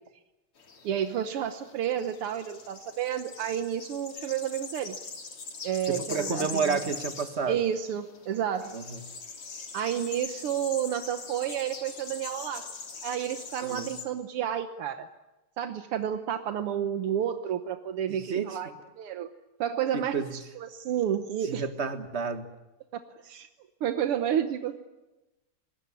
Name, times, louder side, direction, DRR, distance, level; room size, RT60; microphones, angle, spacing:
sound 1, 0.6-14.0, left 5 dB, 80° left, 3.9 m, -42 dB
voice 1, 0.8-5.0 5.6-6.8 7.5-8.8 9.7-12.7 13.0-15.1 15.6-18.7 19.0-19.3 19.6-21.6 22.9-23.5 23.8-24.8, right 9 dB, 80° right, 8 dB, 2.0 m, -31 dB
voice 2, 5.9-7.6 8.7-9.0 13.6-13.9 18.1-18.7 19.9-20.3 21.4-22.4, right 5 dB, 30° right, 8 dB, 1.8 m, -31 dB
25.5 x 20.5 x 9.8 m, 1.0 s
omnidirectional pair, 2.4 m